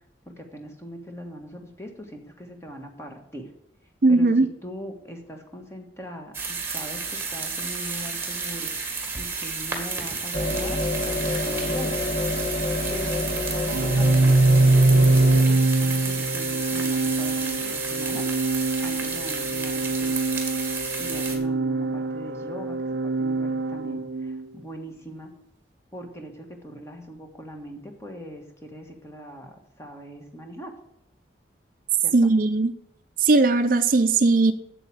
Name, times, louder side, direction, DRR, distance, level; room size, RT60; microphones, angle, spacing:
voice 1, 0.2-3.5 4.1-8.7 9.1-10.8 11.0-12.0 12.9-20.3 21.0-25.3 25.9-30.7 32.0-32.1, equal, 15° left, 3 dB, 1.5 m, -41 dB
voice 2, 4.0-4.5 32.1-32.7 33.2-34.5, right 3 dB, 50° right, 10 dB, 0.5 m, -18 dB
sound 1, 6.3-21.4, right 4 dB, 15° right, 1.7 m, -31 dB
sound 2, 10.3-15.4, left 2 dB, 65° left, 2.1 m, -28 dB
Organ, 13.7-24.5, right 2 dB, 90° right, 0.6 m, -23 dB
7.9 x 7.6 x 7.5 m, 0.79 s
head